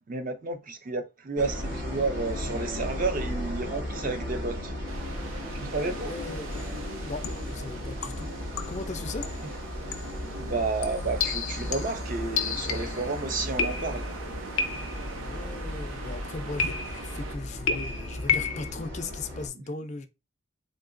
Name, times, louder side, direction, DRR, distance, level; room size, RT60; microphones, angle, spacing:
voice 1, 0.1-4.7 5.5-6.1 10.4-14.0, right 3 dB, 40° right, 0.4 m, -31 dB
sound 1, 1.4-19.5, left 1 dB, 60° right, 1.5 m, -36 dB
sound 2, 4.9-17.4, right 3 dB, 85° right, 0.7 m, -43 dB
voice 2, 5.8-8.3 8.7-9.3 15.2-20.1, left 3 dB, 35° left, 0.4 m, -38 dB
sound 3, 6.5-6.8 7.2-7.5 8.0-8.9 9.2-9.5 9.9-10.2 10.8-13.1 13.6-14.2 14.6-15.1 16.6-17.2 17.7-18.7, left 6 dB, 90° left, 0.5 m, -31 dB
3.7 x 2.7 x 2.4 m
head